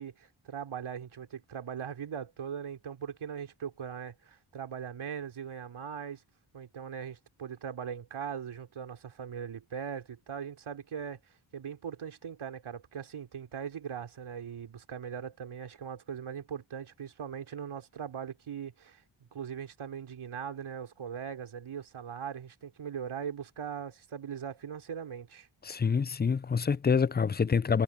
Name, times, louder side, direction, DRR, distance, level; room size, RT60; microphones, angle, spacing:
voice 1, 0.0-6.2 6.5-11.2 11.5-19.0 19.3-25.5, right 7 dB, 75° right, 3.9 m, -40 dB
voice 2, 25.6-27.8, left 6 dB, 20° left, 0.4 m, -26 dB
cardioid pair, 50°, 50 cm